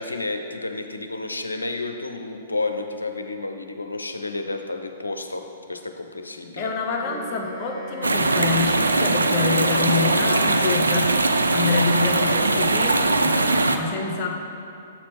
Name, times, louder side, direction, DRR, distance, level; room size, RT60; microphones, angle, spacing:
voice 1, 0.0-5.4 5.7-6.7, left 2 dB, 75° left, 5 dB, 0.5 m, -31 dB
voice 2, 6.6-14.3, left 4 dB, 30° left, 0 dB, 0.8 m, -27 dB
Wind instrument woodwind instrument, 7.0-11.2, right 1 dB, ahead, 1.1 m, -38 dB
sound 1, 8.0-13.8, right 2 dB, 75° right, 0.3 m, -20 dB
7.5 x 4.3 x 4.5 m, 2.5 s
figure-of-eight pair, 115°, 0 cm